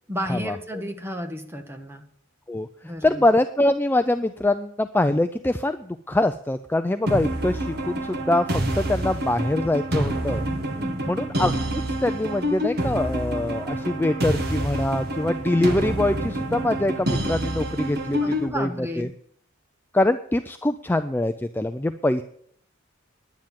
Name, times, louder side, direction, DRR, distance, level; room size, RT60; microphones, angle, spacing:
voice 1, 0.1-2.0 2.8-3.2 10.8-11.2 18.2-19.1, equal, 10° right, 5 dB, 1.5 m, -32 dB
voice 2, 3.0-8.5 8.8-10.4 11.1-18.7 19.0-19.1 19.9-22.2, left 1 dB, 10° left, 9 dB, 0.4 m, -24 dB
sound 1, 7.1-18.5, right 1 dB, 50° right, 1.9 m, -27 dB
10.5 x 9.7 x 7.4 m, 0.65 s
head